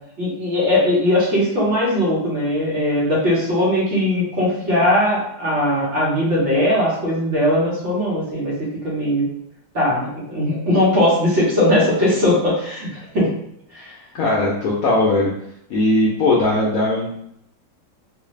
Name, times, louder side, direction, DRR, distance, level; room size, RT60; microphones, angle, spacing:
voice 1, 0.2-9.3 9.7-13.3 13.7-13.9, left 1 dB, 45° right, -6 dB, 1.2 m, -19 dB
voice 2, 14.1-15.3 15.7-17.2, left 2 dB, 65° left, -4 dB, 0.9 m, -19 dB
3.9 x 2.3 x 3.1 m, 0.74 s
omnidirectional pair, 2.0 m